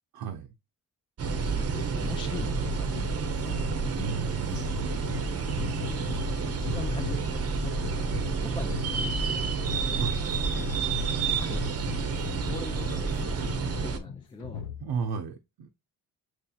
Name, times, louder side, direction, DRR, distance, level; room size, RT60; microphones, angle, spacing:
voice 1, 0.1-0.5 3.8-5.2 10.0-10.2 14.8-15.7, right 6 dB, 80° right, 0.6 m, -35 dB
sound 1, 1.2-14.0, right 4 dB, 40° right, 0.7 m, -29 dB
voice 2, 1.3-3.4 5.8-6.1 6.6-8.0 8.4-9.5 11.3-11.8 12.2-14.6, left 3 dB, 15° left, 0.4 m, -42 dB
sound 2, 2.4-15.1, left 6 dB, 70° left, 0.9 m, -39 dB
sound 3, 3.3-3.4 4.4-4.7 5.4-5.9 7.6-7.7 8.0-8.4 8.8-9.3 9.6-10.0 11.2-11.5 12.2-12.6, left 5 dB, 90° left, 2.7 m, -53 dB
6.3 x 2.7 x 2.3 m
wide cardioid pair, 140°, 36 cm